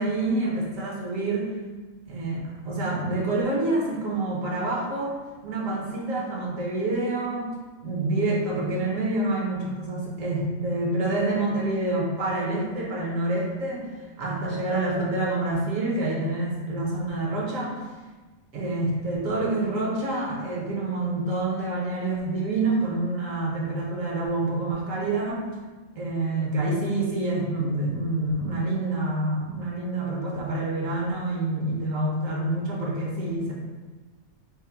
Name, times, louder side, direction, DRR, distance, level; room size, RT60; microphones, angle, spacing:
voice 1, 0.0-1.5 2.1-5.1 5.4-7.5 7.8-17.8 18.5-25.5 26.0-33.5, right 2 dB, 65° right, -4 dB, 1.1 m, -27 dB
3.6 x 2.1 x 4.2 m, 1.3 s
omnidirectional pair, 1.5 m